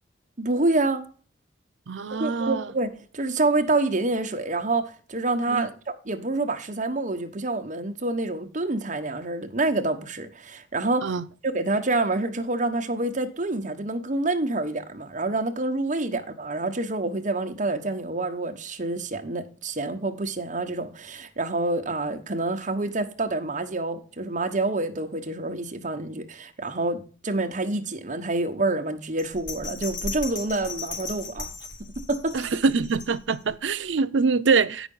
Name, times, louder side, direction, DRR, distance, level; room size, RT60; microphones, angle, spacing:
voice 1, 0.4-1.0 2.1-11.1 11.4-31.5 32.0-32.4, right 2 dB, 40° right, 1.1 m, -27 dB
voice 2, 1.9-2.7 5.5-5.7 11.0-11.2 16.1-16.2 32.3-34.9, right 4 dB, 75° right, 0.5 m, -24 dB
Bell, 29.2-33.5 33.9-34.0, left 3 dB, 80° left, 3.1 m, -36 dB
8.8 x 6.1 x 5.3 m
head